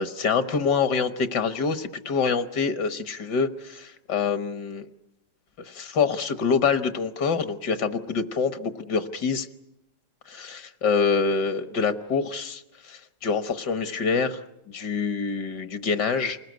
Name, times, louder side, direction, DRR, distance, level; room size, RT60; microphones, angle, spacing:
voice 1, 0.0-4.9 5.6-9.5 10.3-14.4 14.7-16.4, left 5 dB, 70° left, 11 dB, 1.7 m, -26 dB
28.5 x 20.0 x 9.2 m, 0.86 s
omnidirectional pair, 1.9 m